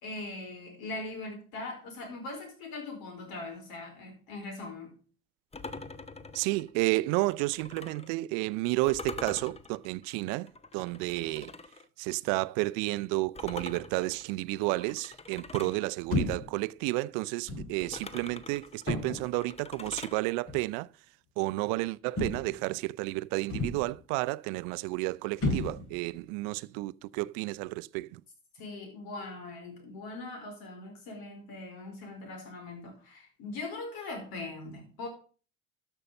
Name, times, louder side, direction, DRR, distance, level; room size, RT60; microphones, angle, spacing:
voice 1, 0.0-4.9 15.6-15.7 28.5-35.1, left 2 dB, 60° left, 4.4 m, -41 dB
sound 1, 5.5-8.1 8.9-11.9 13.4-15.8 17.8-20.2, left 4 dB, 15° left, 0.9 m, -44 dB
voice 2, 6.3-11.5 12.0-20.9 21.4-28.2, right 21 dB, 60° right, 0.5 m, -31 dB
sound 2, 16.1-16.6 17.5-17.8 18.9-19.4 20.5-20.7 22.2-22.7 23.5-24.0 25.4-26.1, left 2 dB, 35° left, 2.6 m, -32 dB
13.0 x 5.6 x 5.3 m
hypercardioid pair, 70°, 41 cm